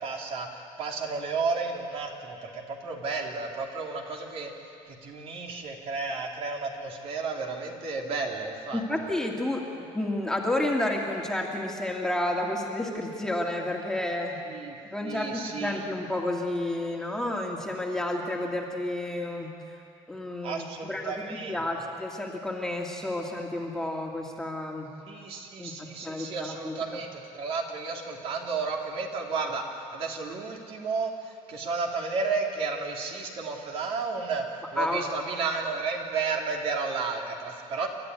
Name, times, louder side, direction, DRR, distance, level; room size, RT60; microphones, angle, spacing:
voice 1, 0.0-4.5 4.8-8.8 14.5-15.9 20.4-21.6 25.1-37.9, right 4 dB, 55° right, 0 dB, 3.2 m, -32 dB
voice 2, 8.7-9.6 9.9-14.4 14.9-19.5 20.1-24.9 25.6-26.7 34.8-35.0, left 1 dB, 5° left, -1 dB, 2.3 m, -31 dB
29.5 x 13.0 x 9.6 m, 2.5 s
cardioid pair, 145°, 12 cm